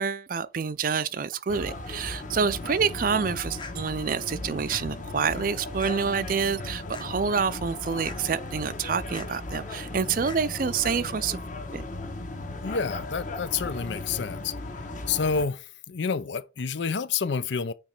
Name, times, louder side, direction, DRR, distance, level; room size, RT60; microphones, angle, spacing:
voice 1, 0.0-11.4 11.7-11.8, right 6 dB, 45° right, 0.4 m, -27 dB
sound 1, 1.5-15.5, left 2 dB, 40° left, 1.1 m, -37 dB
sound 2, 3.6-3.7 4.7-4.8 5.8-6.0 6.9-7.1 8.0-8.2 9.1-9.3 10.2-10.4, left 4 dB, 25° left, 0.8 m, -41 dB
voice 2, 12.6-17.7, left 5 dB, 70° left, 0.5 m, -29 dB
8.9 x 3.2 x 4.4 m
head